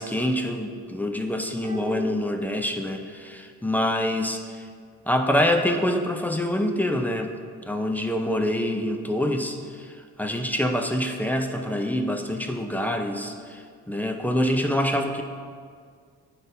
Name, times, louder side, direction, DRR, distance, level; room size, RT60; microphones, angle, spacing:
voice 1, 0.0-4.7 5.1-7.3 7.7-15.2, left 1 dB, 5° left, 3 dB, 0.5 m, -26 dB
sound 1, 1.6-3.3 3.6-3.7, right 3 dB, 25° right, 0.9 m, -39 dB
10.5 x 3.9 x 2.7 m, 2.1 s
cardioid pair, 90°, 30 cm